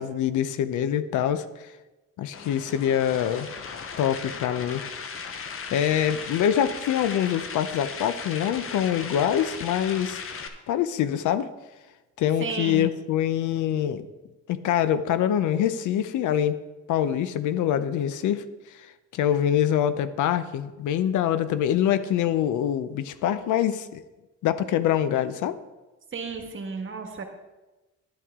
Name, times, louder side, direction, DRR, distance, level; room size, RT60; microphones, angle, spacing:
voice 1, 0.0-1.4 2.2-3.5 4.0-4.9 5.3-10.4 10.7-11.5 12.2-14.1 14.5-16.6 16.9-18.4 19.1-24.0 24.4-25.6, left 10 dB, 80° left, 13 dB, 0.7 m, -25 dB
sound 1, 2.3-10.5, left 5 dB, 45° left, 1.0 m, -37 dB
voice 2, 12.4-12.9 26.1-27.2, right 4 dB, 40° right, 5 dB, 1.4 m, -33 dB
10.5 x 8.5 x 3.7 m, 1.1 s
cardioid pair, 90°, 30 cm